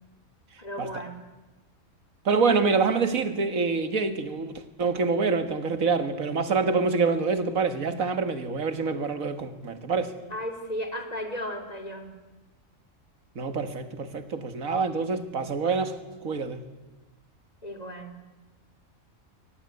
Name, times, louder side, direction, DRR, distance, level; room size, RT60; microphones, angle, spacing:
voice 1, 0.6-1.2 10.3-12.1 17.6-18.2, equal, 30° left, 7 dB, 3.2 m, -35 dB
voice 2, 2.3-10.2 13.4-16.6, right 4 dB, 90° right, 10 dB, 2.1 m, -26 dB
23.5 x 18.0 x 9.6 m, 1.2 s
omnidirectional pair, 1.4 m